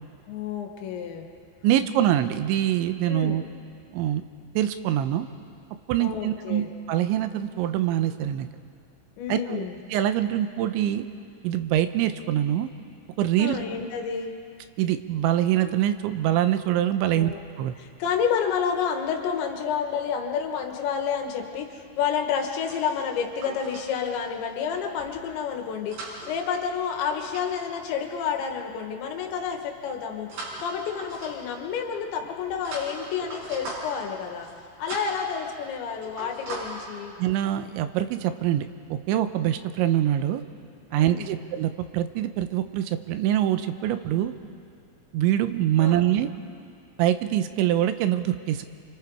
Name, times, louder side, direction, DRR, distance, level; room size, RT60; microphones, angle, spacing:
voice 1, 0.3-1.3 3.1-3.4 6.0-6.7 9.2-9.8 13.4-14.3 17.1-17.4 17.8-30.3 30.6-34.5 34.8-37.2 40.9-41.3 45.8-46.1, left 7 dB, 75° left, 3 dB, 3.7 m, -29 dB
voice 2, 1.6-3.4 3.9-4.2 4.6-5.3 5.9-8.5 9.3-11.0 11.4-12.7 13.2-13.6 14.8-17.7 37.2-40.4 40.9-44.3 45.1-46.3 47.0-48.7, right 12 dB, 85° right, 10 dB, 3.1 m, -24 dB
sound 1, 22.5-23.9 24.7-25.1 25.7-27.5 27.7-28.0 30.3-31.6 32.2-34.1 34.4-34.6 34.9-35.2 35.6-35.8 36.0-36.6, right 2 dB, 65° right, 8.0 m, -39 dB
29.5 x 26.0 x 4.8 m, 2.3 s
omnidirectional pair, 5.4 m